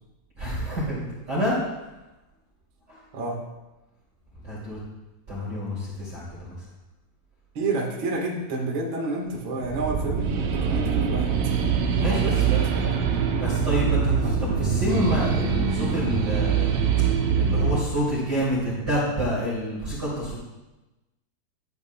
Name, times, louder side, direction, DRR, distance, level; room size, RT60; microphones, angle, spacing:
voice 1, 0.4-1.6 2.9-3.0 4.4-4.8 5.3-6.6 11.9-12.6 13.4-16.7 17.3-20.4, equal, 30° right, -8 dB, 2.6 m, -28 dB
voice 2, 7.5-11.3 12.0-12.3 14.2-14.3, right 2 dB, 55° right, -2 dB, 1.3 m, -29 dB
sound 1, 9.6-17.8, right 6 dB, 80° right, 2.0 m, -23 dB
13.5 x 8.6 x 2.3 m, 1.0 s
omnidirectional pair, 4.6 m